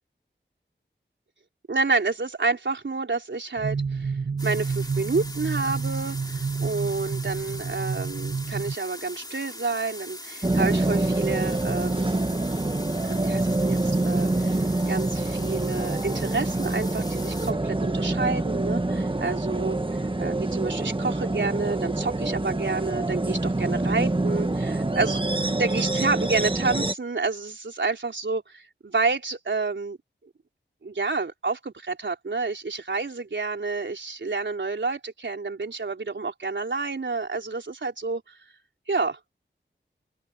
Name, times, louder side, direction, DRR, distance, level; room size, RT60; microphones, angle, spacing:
voice 1, 1.7-4.1 4.4-12.2 13.0-14.6 14.9-19.8 20.2-30.0 30.8-38.2 38.9-39.2, right 4 dB, 75° right, 4.1 m, -29 dB
sound 1, 3.6-8.8, right 5 dB, 45° right, 0.5 m, -29 dB
sound 2, 4.4-17.5, left 1 dB, 20° left, 3.3 m, -41 dB
sound 3, 10.4-26.9, right 2 dB, 25° right, 1.5 m, -26 dB
open air
wide cardioid pair, 75°, 19 cm